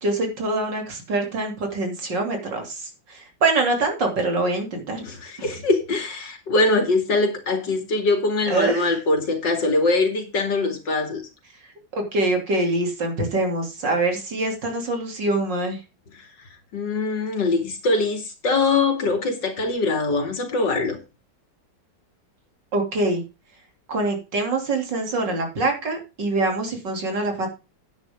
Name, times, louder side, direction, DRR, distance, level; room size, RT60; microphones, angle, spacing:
voice 1, 0.0-5.0 8.5-9.0 11.9-15.8 22.7-23.2 23.9-27.5, right 2 dB, 70° right, 3.6 m, -24 dB
voice 2, 5.0-11.3 16.7-21.0, left 3 dB, 70° left, 3.1 m, -22 dB
10.5 x 9.5 x 3.7 m
omnidirectional pair, 2.0 m